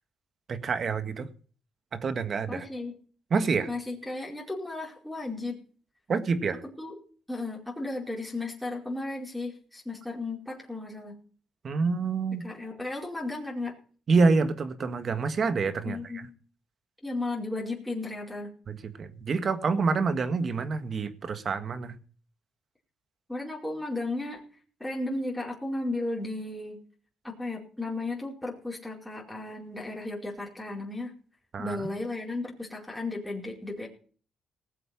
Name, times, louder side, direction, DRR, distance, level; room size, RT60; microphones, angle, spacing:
voice 1, 0.5-1.3 1.9-2.6 3.3-3.7 6.1-6.6 11.6-12.5 14.1-16.3 18.7-22.0 31.5-31.9, right 4 dB, 50° right, 10 dB, 1.8 m, -27 dB
voice 2, 2.5-2.9 3.7-5.6 6.8-7.0 7.3-11.2 12.4-13.8 15.8-16.3 17.0-18.5 23.3-24.4 24.8-26.8 27.2-31.1 31.6-33.9, left 2 dB, 5° left, -3 dB, 4.8 m, -34 dB
18.5 x 7.8 x 6.0 m, 0.43 s
cardioid pair, 90°, 0 cm